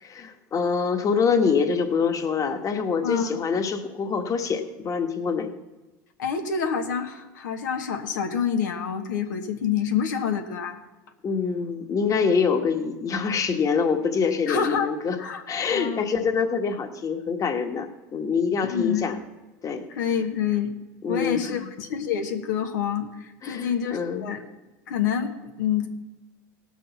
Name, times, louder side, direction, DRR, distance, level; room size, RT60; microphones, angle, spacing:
voice 1, 0.0-5.5 11.2-15.2 15.5-19.2 19.6-19.8 21.0-21.7 23.4-24.3, left 5 dB, 35° left, 6 dB, 1.4 m, -25 dB
voice 2, 3.0-3.4 6.2-10.8 14.5-14.9 15.2-15.4 15.7-16.1 18.6-19.0 19.9-20.7 21.1-24.5 24.9-25.9, left 7 dB, 85° left, 5 dB, 1.3 m, -27 dB
17.5 x 6.3 x 5.8 m, 1.1 s
hypercardioid pair, 90°, 10 cm